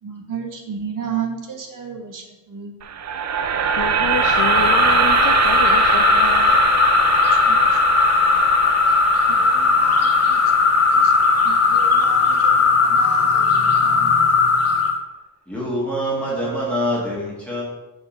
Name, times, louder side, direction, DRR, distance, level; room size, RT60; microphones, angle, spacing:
voice 1, 0.0-2.8 7.2-7.8 9.3-10.5 10.9-11.1 11.4-14.1, right 6 dB, 75° right, 2 dB, 1.2 m, -33 dB
sound 1, 2.8-12.9, right 7 dB, 55° right, 0.5 m, -23 dB
voice 2, 3.8-6.5, left 8 dB, 90° left, 3 dB, 0.6 m, -28 dB
sound 2, 4.1-15.0, left 4 dB, 50° left, 0.7 m, -17 dB
voice 3, 15.5-17.6, equal, 5° left, -6 dB, 1.5 m, -24 dB
5.3 x 4.3 x 5.6 m, 1.1 s
wide cardioid pair, 170°, 33 cm